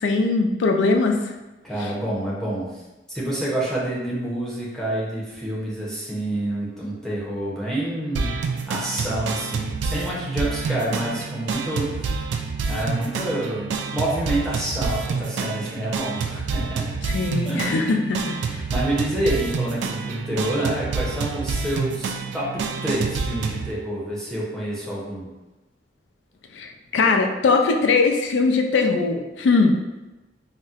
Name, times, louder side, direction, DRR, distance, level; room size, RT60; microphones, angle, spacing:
voice 1, 0.0-1.2 1.8-1.9 17.1-18.6 26.5-29.8, left 3 dB, 90° left, 4 dB, 0.4 m, -21 dB
voice 2, 1.6-2.8 3.1-8.4 8.7-12.3 12.7-16.9 17.4-18.1 18.4-25.3, right 1 dB, 5° left, -7 dB, 0.6 m, -28 dB
sound 1, 8.1-23.7, right 4 dB, 85° right, 0.3 m, -28 dB
4.0 x 2.1 x 2.4 m, 1.1 s
head